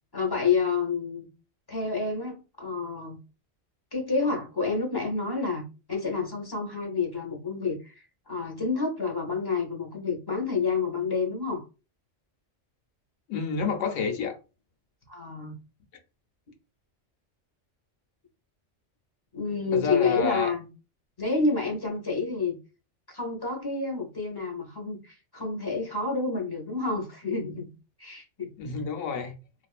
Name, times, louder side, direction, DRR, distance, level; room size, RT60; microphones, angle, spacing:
voice 1, 0.1-1.3 1.7-3.2 3.9-5.6 5.9-11.7 15.1-15.6 19.3-20.7 21.2-22.6 23.1-27.7 28.0-28.5, left 4 dB, 25° left, 0.7 m, -29 dB
voice 2, 13.3-14.4 19.7-20.5 28.6-29.4, left 5 dB, 80° left, 1.0 m, -29 dB
2.5 x 2.3 x 2.3 m
omnidirectional pair, 1.3 m